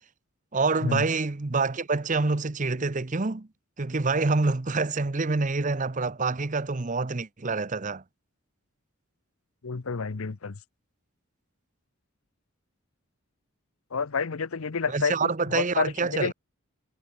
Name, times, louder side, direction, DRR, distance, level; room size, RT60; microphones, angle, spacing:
voice 1, 0.5-3.5 3.8-8.0 14.9-16.3, right 3 dB, 35° right, 0.7 m, -26 dB
voice 2, 9.6-10.6 13.9-16.3, left 5 dB, 75° left, 0.8 m, -29 dB
head